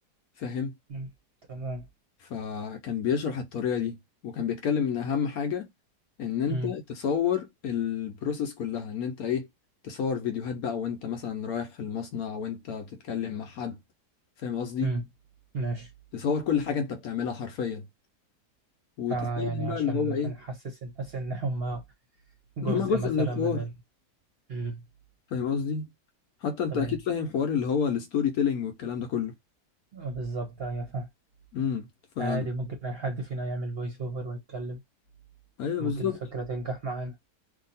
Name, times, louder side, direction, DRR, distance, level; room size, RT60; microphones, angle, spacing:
voice 1, 0.4-0.7 2.3-4.0 4.2-5.7 6.2-9.5 9.8-13.8 14.4-14.9 16.1-17.9 19.0-20.3 22.6-23.6 25.3-25.9 26.4-29.3 31.5-31.9 32.2-32.5 35.6-36.2, left 7 dB, 65° left, 1.1 m, -29 dB
voice 2, 1.5-1.9 6.5-6.7 14.8-15.1 15.5-15.9 19.1-21.8 22.6-23.7 24.5-24.8 26.7-27.0 29.9-31.1 32.2-34.8 35.8-37.2, right 3 dB, 45° right, 0.8 m, -33 dB
2.8 x 2.7 x 4.0 m
omnidirectional pair, 1.8 m